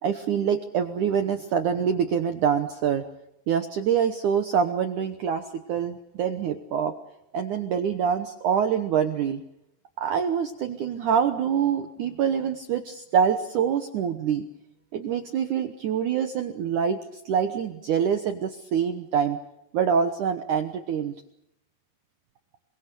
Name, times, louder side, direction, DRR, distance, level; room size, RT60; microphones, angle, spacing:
voice 1, 0.0-3.0 3.5-6.9 7.3-9.4 10.0-14.5 14.9-17.0 17.3-19.4 19.7-21.1, right 7 dB, 75° right, 7 dB, 1.8 m, -25 dB
28.0 x 22.5 x 6.7 m, 0.80 s
omnidirectional pair, 5.1 m